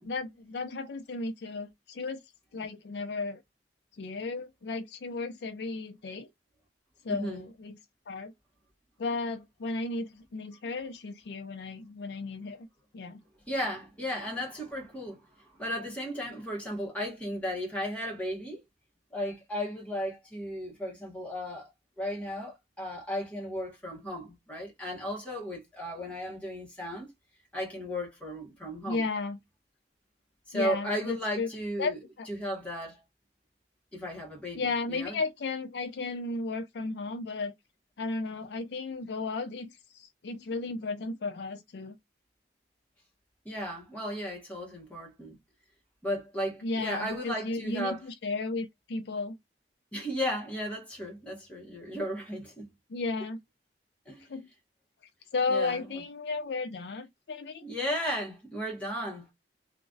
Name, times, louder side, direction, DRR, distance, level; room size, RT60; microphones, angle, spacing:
voice 1, 0.0-2.2 2.5-3.4 4.0-6.3 7.0-7.8 8.1-8.3 9.0-12.7 12.9-13.2 28.9-29.4 30.5-31.5 31.8-31.9 32.2-32.3 34.6-37.5 38.0-42.0 46.6-49.4 52.9-53.4 54.3-54.5 55.3-57.6, left 3 dB, 70° left, 0.4 m, -34 dB
voice 2, 7.1-7.5 13.5-18.6 19.1-21.7 22.0-27.1 27.5-29.0 30.5-32.0 32.3-33.0 33.9-35.2 43.4-45.4 46.0-48.0 49.9-52.7 54.0-54.3 55.5-56.0 57.6-59.3, equal, 10° left, 1.4 m, -35 dB
3.0 x 2.5 x 2.5 m
head